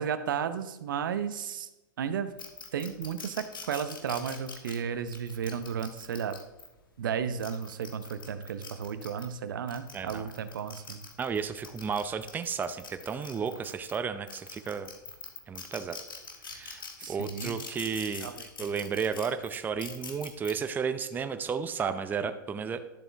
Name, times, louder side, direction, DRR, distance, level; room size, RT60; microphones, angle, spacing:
voice 1, 0.0-1.7 2.0-2.3 2.7-6.4 7.0-11.0 17.0-17.6 18.2-18.5, right 7 dB, 75° right, 11 dB, 0.8 m, -33 dB
sound 1, 2.4-6.7 7.2-9.3 9.7-14.0 14.3-20.5, left 5 dB, 85° left, 1.6 m, -44 dB
voice 2, 9.9-10.3 11.2-14.9 15.5-16.0 16.5-18.3 18.6-22.8, right 6 dB, 15° right, 10 dB, 0.6 m, -33 dB
11.5 x 7.0 x 3.5 m, 0.98 s
hypercardioid pair, 110°, 11 cm